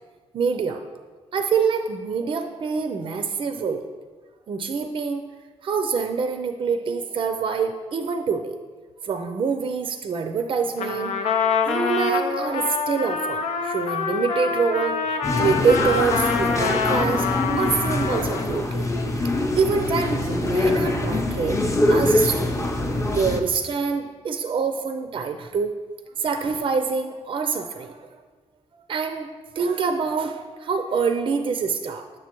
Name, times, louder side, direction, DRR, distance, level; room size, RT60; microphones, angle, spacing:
voice 1, 0.3-0.8 1.3-3.9 4.5-5.2 5.6-8.5 9.0-11.2 11.7-15.0 15.4-17.3 17.6-18.9 19.2-22.5 23.1-25.7 26.2-28.1 28.7-29.3 29.6-32.1, right 5 dB, 50° right, 7 dB, 0.4 m, -25 dB
Trumpet, 10.8-18.6, left 6 dB, 85° left, 0.6 m, -26 dB
sound 1, 15.2-23.4, left 1 dB, 25° left, 0.7 m, -24 dB
7.4 x 6.5 x 3.0 m, 1.4 s
cardioid pair, 90°, 11 cm